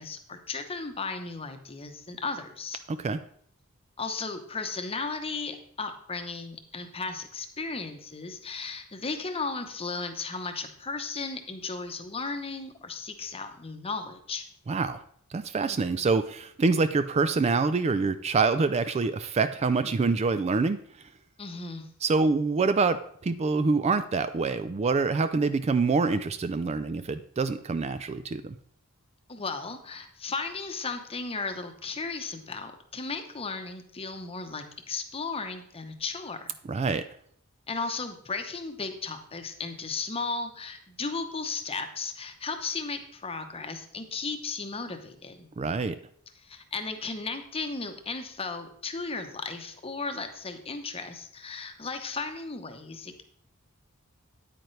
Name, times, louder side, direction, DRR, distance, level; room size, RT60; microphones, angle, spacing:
voice 1, 0.0-2.8 4.0-14.4 21.4-21.9 29.3-36.5 37.7-45.5 46.4-53.2, left 4 dB, 25° left, 6 dB, 0.9 m, -35 dB
voice 2, 2.9-3.2 14.7-15.0 15.3-20.8 22.0-23.0 23.2-28.5 36.7-37.0 45.6-46.0, right 4 dB, 30° right, 11 dB, 0.3 m, -26 dB
9.2 x 8.8 x 3.2 m, 0.63 s
head